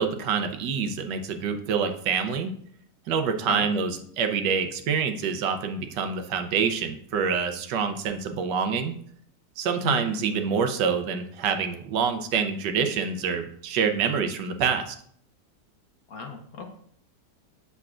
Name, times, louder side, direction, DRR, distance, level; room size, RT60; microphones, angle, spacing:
voice 1, 0.0-2.5 3.1-8.9 9.6-15.0, right 6 dB, 85° right, 7 dB, 1.4 m, -26 dB
voice 2, 16.1-16.7, left 5 dB, 60° left, 3 dB, 1.3 m, -34 dB
8.3 x 6.6 x 2.4 m, 0.63 s
omnidirectional pair, 1.9 m